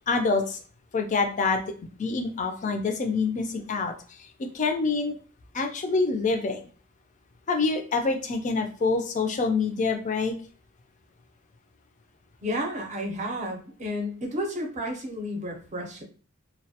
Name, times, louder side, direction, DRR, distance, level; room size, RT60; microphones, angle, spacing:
voice 1, 0.1-0.6 0.9-1.6 2.0-3.9 4.2-4.3 4.5-5.1 5.5-6.7 7.5-10.3, left 4 dB, 35° left, 5 dB, 0.4 m, -26 dB
voice 2, 12.4-16.0, equal, 35° right, 1 dB, 0.6 m, -32 dB
2.2 x 2.1 x 2.7 m, 0.39 s
head